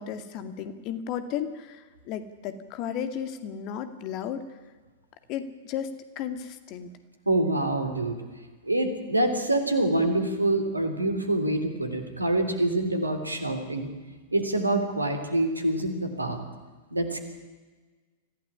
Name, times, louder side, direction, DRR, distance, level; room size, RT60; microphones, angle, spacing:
voice 1, 0.0-4.4 5.3-6.9, left 8 dB, 40° left, 10 dB, 2.2 m, -34 dB
voice 2, 7.3-8.2 8.6-13.9 14.3-16.4 16.9-17.2, right 1 dB, 80° right, 8 dB, 3.3 m, -26 dB
25.0 x 16.0 x 9.9 m, 1.3 s
figure-of-eight pair, 95°, 0 cm